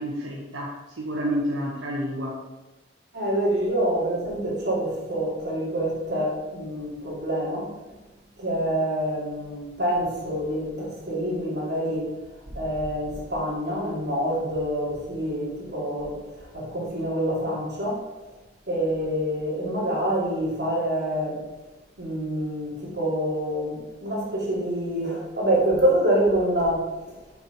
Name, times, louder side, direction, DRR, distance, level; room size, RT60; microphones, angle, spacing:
voice 1, 0.0-2.4, equal, 90° right, 0.9 m, -29 dB
voice 2, 3.1-7.9 8.4-12.1 12.5-18.0 18.7-21.4 22.0-26.9, right 1 dB, 60° right, 2.4 m, -26 dB
5.9 x 4.5 x 5.1 m
head